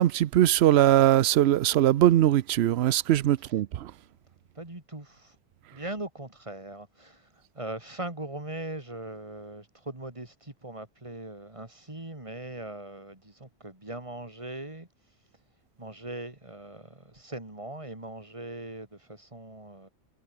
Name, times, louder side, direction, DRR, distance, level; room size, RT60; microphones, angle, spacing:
voice 1, 0.0-3.9, right 13 dB, 65° right, 0.8 m, -21 dB
voice 2, 4.5-5.4 5.7-14.9 15.8-19.9, right 2 dB, 25° right, 3.1 m, -40 dB
omnidirectional pair, 1.2 m